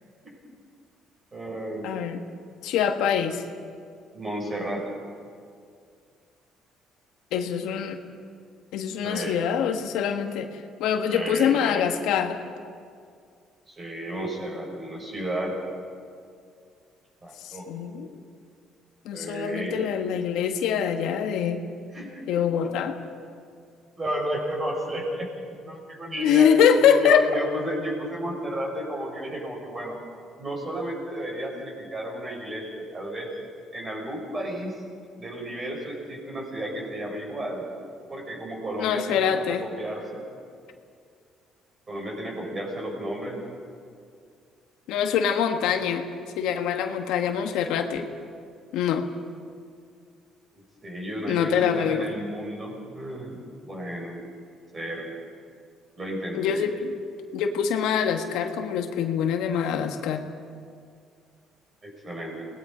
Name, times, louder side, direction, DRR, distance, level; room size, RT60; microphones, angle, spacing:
voice 1, 1.3-1.9 4.1-4.9 9.0-9.4 11.1-11.8 13.7-15.6 17.2-17.7 19.1-19.8 21.9-22.2 24.0-25.3 25.6-26.5 27.0-30.0 30.4-33.3 33.7-34.8 35.2-37.6 38.1-40.2 41.9-43.4 50.8-54.2 54.7-55.1 56.0-56.7 61.8-62.5, right 1 dB, 25° right, -1 dB, 6.9 m, -33 dB
voice 2, 1.8-2.2 2.6-3.4 7.3-8.0 8.7-10.5 10.8-12.4 17.4-18.1 19.0-21.6 22.3-23.0 26.2-27.2 38.8-39.6 44.9-46.1 46.4-48.1 48.7-49.0 51.3-52.1 56.3-56.9 57.3-60.2, left 8 dB, 85° left, 5 dB, 1.6 m, -24 dB
29.0 x 19.5 x 5.1 m, 2.3 s
cardioid pair, 125°, 0 cm